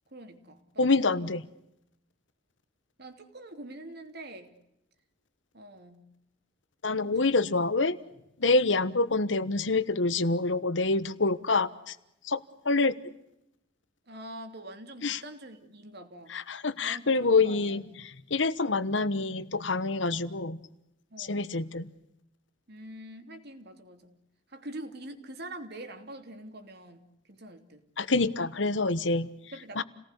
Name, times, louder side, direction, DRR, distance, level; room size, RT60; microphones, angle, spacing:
voice 1, 0.1-0.9 3.0-4.5 5.5-6.0 7.0-7.4 14.1-16.4 16.8-17.8 21.1-21.5 22.7-24.1 24.5-27.8 29.2-29.8, right 1 dB, 60° right, 7 dB, 3.1 m, -45 dB
voice 2, 0.8-1.5 6.8-8.0 8.4-11.9 12.2-12.4 12.6-13.0 15.0-15.2 16.3-20.6 21.2-21.9 28.0-29.3 29.8-29.9, left 3 dB, 80° left, 14 dB, 1.3 m, -26 dB
30.0 x 18.5 x 8.3 m, 0.85 s
head